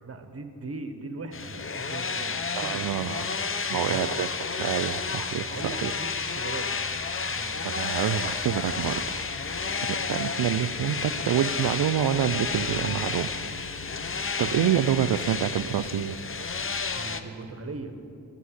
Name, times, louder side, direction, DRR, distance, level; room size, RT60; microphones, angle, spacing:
voice 1, 0.0-3.2 3.6-4.1 5.3-6.7 7.2-7.6 9.6-10.4 13.9-14.1 16.9-18.0, right 3 dB, 35° right, 7 dB, 1.2 m, -40 dB
sound 1, 1.3-17.2, left 5 dB, 30° left, 0.7 m, -31 dB
voice 2, 2.5-3.4 3.7-4.3 4.6-5.9 7.6-9.2 9.9-13.3 14.4-16.5, right 10 dB, 65° right, 9 dB, 0.5 m, -27 dB
9.0 x 8.4 x 9.6 m, 2.6 s
cardioid pair, 70°, 41 cm